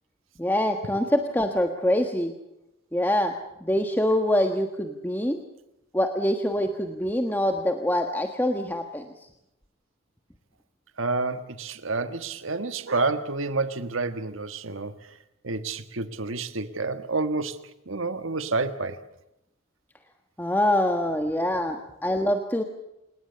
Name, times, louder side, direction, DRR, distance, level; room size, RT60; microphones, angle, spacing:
voice 1, 0.4-2.3 2.9-3.3 3.6-5.4 5.9-9.1 20.4-22.6, left 1 dB, 10° left, 1.4 m, -25 dB
voice 2, 11.0-14.9 15.4-19.0 21.4-21.6, right 3 dB, 75° right, 1.6 m, -29 dB
27.5 x 19.5 x 6.9 m
head